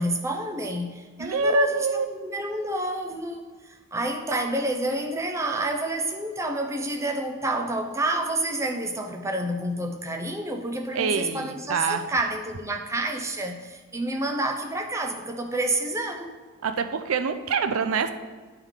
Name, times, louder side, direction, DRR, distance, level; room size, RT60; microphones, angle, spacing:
voice 1, 0.0-16.3, right 1 dB, 15° right, 4 dB, 0.5 m, -29 dB
voice 2, 1.2-2.1 10.9-12.0 16.6-18.1, right 4 dB, 75° right, 9 dB, 0.4 m, -25 dB
10.5 x 3.8 x 4.8 m, 1.4 s
head